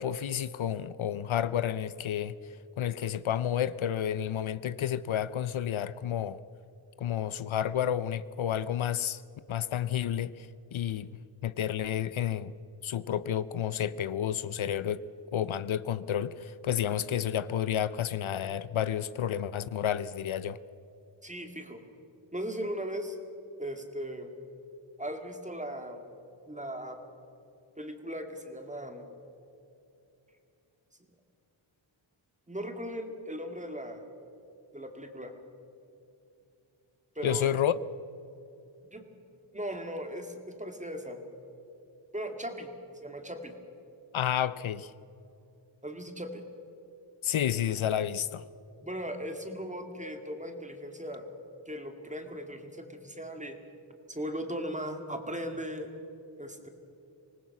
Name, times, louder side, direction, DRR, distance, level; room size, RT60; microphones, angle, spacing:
voice 1, 0.0-2.4 2.8-6.4 7.0-9.2 9.5-11.1 11.4-12.5 12.8-15.0 15.3-20.6 37.2-37.7 44.1-44.9 47.2-48.4, left 10 dB, 75° left, 0.7 m, -30 dB
voice 2, 21.2-21.8 22.3-23.2 23.6-24.3 25.0-26.1 26.5-27.0 27.8-29.1 32.5-34.0 34.7-35.3 37.2-37.5 38.8-39.0 39.5-41.2 42.1-42.7 43.0-43.5 45.8-46.4 48.8-51.3 51.7-53.6 54.1-55.9 56.4-56.7, equal, 15° right, 2.2 m, -38 dB
26.0 x 19.0 x 6.0 m
wide cardioid pair, 105°, 48 cm